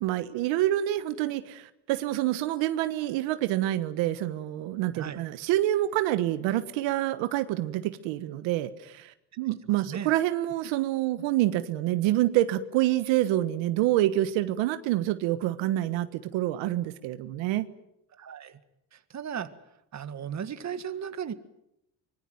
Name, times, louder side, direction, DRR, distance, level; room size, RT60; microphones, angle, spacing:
voice 1, 0.0-17.7, right 14 dB, 85° right, 11 dB, 1.5 m, -27 dB
voice 2, 4.9-5.3 9.9-10.1 18.1-18.6 18.9-19.5 19.9-21.3, right 8 dB, 40° right, 11 dB, 2.0 m, -36 dB
25.0 x 20.5 x 9.3 m, 0.80 s
cardioid pair, 110°, 44 cm